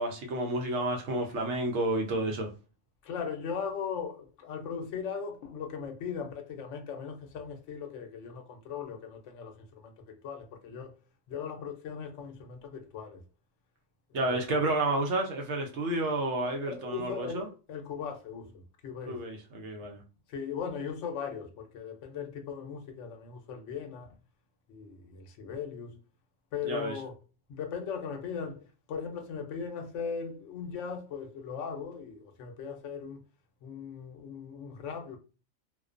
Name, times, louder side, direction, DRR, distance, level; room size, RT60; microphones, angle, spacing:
voice 1, 0.0-2.5 14.1-17.5 19.1-20.0 26.6-26.9, right 2 dB, 70° right, 0.9 m, -30 dB
voice 2, 3.0-11.0 11.3-13.2 14.1-14.6 16.4-19.3 20.3-24.1 24.7-26.0 26.5-27.2 27.5-33.2 33.6-35.2, left 6 dB, 75° left, 0.9 m, -39 dB
2.4 x 2.2 x 2.4 m
omnidirectional pair, 1.3 m